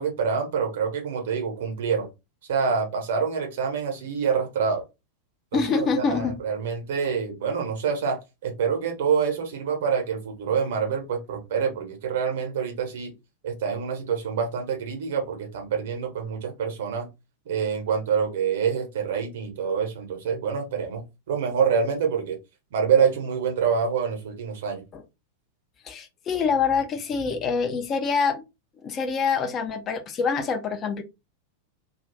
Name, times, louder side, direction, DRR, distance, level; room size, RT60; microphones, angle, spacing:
voice 1, 0.0-2.1 2.5-4.8 5.5-13.1 13.4-17.1 17.5-22.4 22.7-24.8, right 6 dB, 55° right, 0.9 m, -26 dB
voice 2, 5.5-6.4 24.9-25.0 25.8-28.4 28.8-31.0, left 5 dB, 30° left, 0.5 m, -25 dB
2.3 x 2.3 x 3.2 m
figure-of-eight pair, 90°, 0 cm